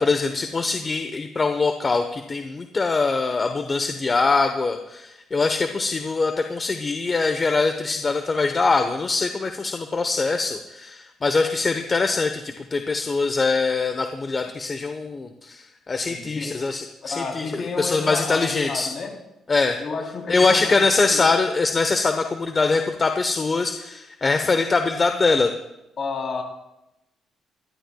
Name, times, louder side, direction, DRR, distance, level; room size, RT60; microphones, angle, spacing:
voice 1, 0.0-18.9 19.5-19.8 20.3-25.5, left 4 dB, 35° left, 6 dB, 1.0 m, -23 dB
voice 2, 16.1-16.6 17.0-19.2 19.8-21.2 26.0-26.4, left 4 dB, 50° left, 1 dB, 3.4 m, -31 dB
23.5 x 12.5 x 2.3 m, 0.91 s
cardioid pair, 90°, 0 cm